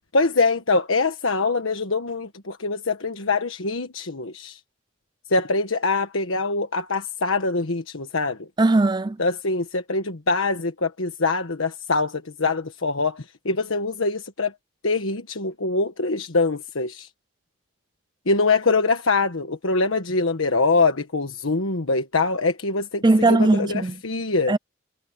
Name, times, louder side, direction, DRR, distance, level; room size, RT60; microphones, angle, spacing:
voice 1, 0.1-4.6 5.3-8.5 9.2-14.5 14.8-17.1 18.3-24.5, left 3 dB, 90° left, 1.4 m, -24 dB
voice 2, 8.6-9.2 23.0-24.0 24.5-24.6, right 2 dB, 20° right, 0.4 m, -18 dB
head